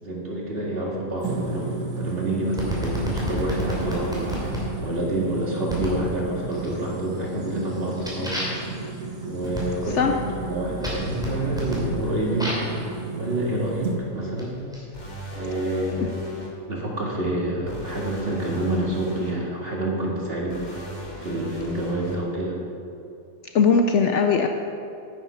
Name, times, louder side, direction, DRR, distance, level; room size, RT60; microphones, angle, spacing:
voice 1, 0.0-8.4 9.3-12.7 13.2-14.7 15.3-16.1 16.7-22.6, right 1 dB, 40° right, -3 dB, 2.2 m, -28 dB
sound 1, 1.2-14.0, right 3 dB, 70° right, 1.7 m, -33 dB
sound 2, 2.6-4.6 5.7-6.0 6.5-7.0 7.4-12.8 13.6-14.8, equal, 5° right, 2.8 m, -32 dB
sound 3, 14.9-16.5 17.7-19.3 20.5-22.2, left 1 dB, 30° left, 1.8 m, -37 dB
voice 2, 23.5-24.5, left 5 dB, 65° left, 5 dB, 0.8 m, -19 dB
9.5 x 9.3 x 5.6 m, 2.6 s
omnidirectional pair, 1.5 m